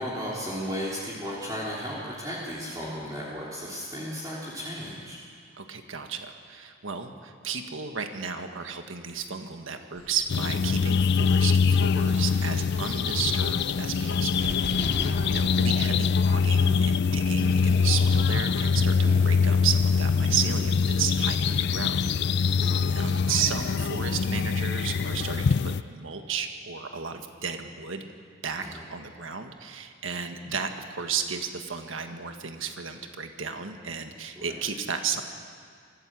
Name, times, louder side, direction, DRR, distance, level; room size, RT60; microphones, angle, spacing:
voice 1, 0.0-5.2 14.7-15.3 19.0-19.2 22.6-22.8 28.6-28.8 34.3-34.6, equal, 20° right, -6 dB, 3.3 m, -35 dB
voice 2, 5.6-14.9 15.3-22.0 22.3-28.0 28.4-35.2, right 6 dB, 85° right, 6 dB, 1.5 m, -33 dB
sound 1, 9.9-15.9, left 3 dB, 35° left, 2.2 m, -50 dB
sound 2, 10.3-25.8, left 5 dB, 60° left, 0.4 m, -24 dB
sound 3, 14.2-18.1, right 1 dB, 40° right, 3.4 m, -41 dB
24.5 x 14.5 x 7.6 m, 2.2 s
head